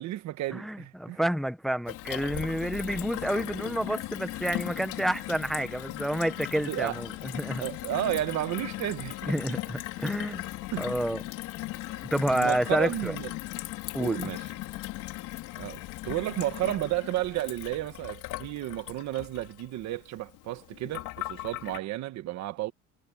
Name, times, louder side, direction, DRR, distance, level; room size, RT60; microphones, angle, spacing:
voice 1, 0.0-1.2 6.7-7.0 7.6-9.6 10.7-11.0 12.3-13.3 14.0-14.5 15.6-22.7, right 15 dB, 60° right, 1.5 m, -32 dB
voice 2, 0.5-7.6 9.3-10.5 10.8-11.2 12.1-13.1 13.9-14.3, right 1 dB, ahead, 0.8 m, -29 dB
Gurgling / Water tap faucet / Sink (filling or washing), 1.9-21.8, left 17 dB, 85° left, 4.0 m, -38 dB
cardioid pair, 160°, 30 cm